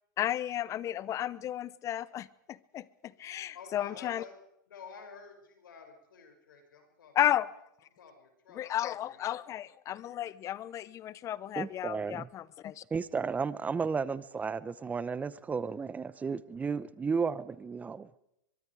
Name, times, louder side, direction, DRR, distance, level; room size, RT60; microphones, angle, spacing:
voice 1, 0.2-4.2 7.1-7.5 8.6-12.8, left 12 dB, 30° left, 20 dB, 0.8 m, -33 dB
voice 2, 3.5-4.3 4.7-7.2 8.0-9.4, left 5 dB, 85° left, 4 dB, 6.6 m, -51 dB
voice 3, 11.6-12.3 12.9-18.1, right 5 dB, 15° right, 18 dB, 0.9 m, -33 dB
23.5 x 23.0 x 4.9 m, 0.81 s
hypercardioid pair, 125°, 11 cm